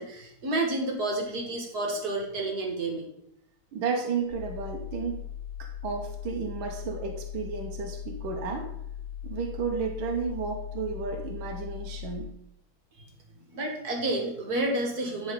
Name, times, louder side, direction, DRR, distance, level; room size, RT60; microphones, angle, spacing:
voice 1, 0.0-3.0 13.0-15.3, right 2 dB, 50° right, 1 dB, 2.0 m, -30 dB
voice 2, 3.7-5.2 5.6-8.7 9.2-12.3, right 5 dB, 80° right, 2 dB, 1.7 m, -32 dB
sound 1, 4.3-12.3, left 10 dB, 75° left, 0.7 m, -39 dB
9.7 x 4.3 x 5.2 m, 0.75 s
omnidirectional pair, 2.2 m